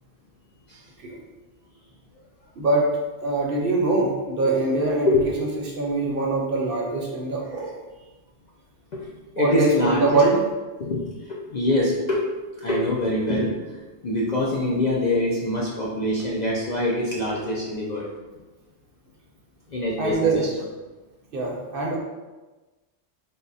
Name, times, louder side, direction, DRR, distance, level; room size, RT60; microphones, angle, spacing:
voice 1, 2.6-2.9 3.2-5.1 5.8-7.7 9.4-10.4 20.0-20.4 21.3-22.0, right 3 dB, 60° right, -2 dB, 0.8 m, -23 dB
voice 2, 5.1-5.5 8.9-9.0 9.4-10.2 10.8-11.0 11.5-12.2 12.6-13.6 14.0-18.1 19.7-20.3, left 1 dB, 55° left, -5 dB, 0.5 m, -24 dB
3.5 x 2.1 x 3.9 m, 1.2 s
omnidirectional pair, 1.2 m